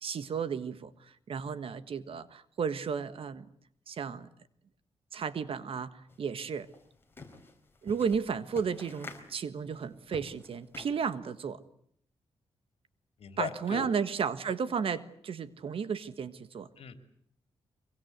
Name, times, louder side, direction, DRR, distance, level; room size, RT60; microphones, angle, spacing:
voice 1, 0.0-3.4 3.9-4.3 5.1-6.7 7.8-11.6 13.4-16.7, right 6 dB, 60° right, 13 dB, 1.6 m, -33 dB
sound 1, 6.1-6.2 6.5-11.1, left 3 dB, 20° left, 4.2 m, -49 dB
voice 2, 13.2-13.9 16.8-16.9, left 7 dB, 70° left, 9 dB, 3.0 m, -38 dB
24.5 x 23.5 x 8.1 m, 0.67 s
wide cardioid pair, 125°, 11 cm